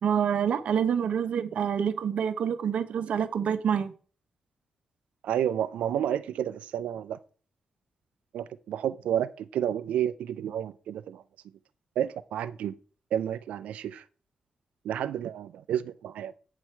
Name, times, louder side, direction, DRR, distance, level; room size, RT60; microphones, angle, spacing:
voice 1, 0.0-3.9, right 8 dB, 75° right, 0.8 m, -27 dB
voice 2, 5.2-7.2 8.3-11.2 12.0-12.7 13.1-14.0 14.8-16.3, right 10 dB, 90° right, 0.4 m, -30 dB
8.5 x 6.2 x 4.4 m
cardioid pair, 70°, 2 cm